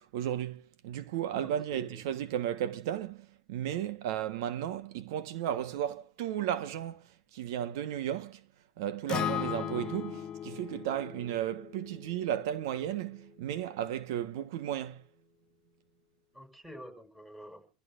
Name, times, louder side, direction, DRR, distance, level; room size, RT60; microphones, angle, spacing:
voice 1, 0.0-8.4 8.8-15.0, right 11 dB, 80° right, 1.1 m, -34 dB
voice 2, 1.4-2.2 16.3-17.6, equal, 5° right, 6.2 m, -49 dB
Acoustic guitar, 9.1-13.3, left 10 dB, 40° left, 0.8 m, -38 dB
28.0 x 15.0 x 2.5 m
supercardioid pair, 125°, 2 cm